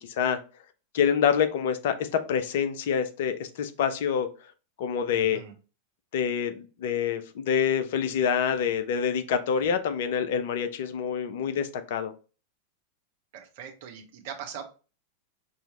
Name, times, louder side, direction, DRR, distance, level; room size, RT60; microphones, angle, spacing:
voice 1, 0.9-4.3 4.8-5.4 6.1-12.1, left 7 dB, 55° left, 0.5 m, -26 dB
voice 2, 5.1-5.5 13.3-14.6, right 8 dB, 50° right, 1.0 m, -41 dB
5.4 x 2.9 x 3.2 m
figure-of-eight pair, 90°, 0 cm